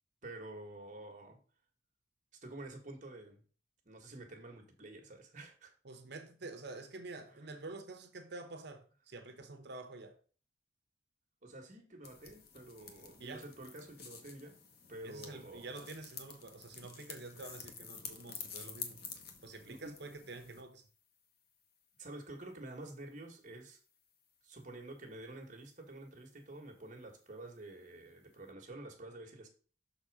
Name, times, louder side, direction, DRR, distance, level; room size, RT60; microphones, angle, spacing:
voice 1, 0.2-1.4 2.3-3.4 3.8-5.7 7.3-7.5 11.4-14.6 14.9-15.8 19.7-20.0 22.0-23.8 24.4-29.5, right 2 dB, 45° right, 1.5 m, -49 dB
voice 2, 5.8-10.2 13.2-13.4 15.0-19.0 19.4-20.8, right 3 dB, 65° right, 0.9 m, -48 dB
sound 1, 12.0-20.6, left 6 dB, 60° left, 1.1 m, -50 dB
6.2 x 4.2 x 4.7 m
head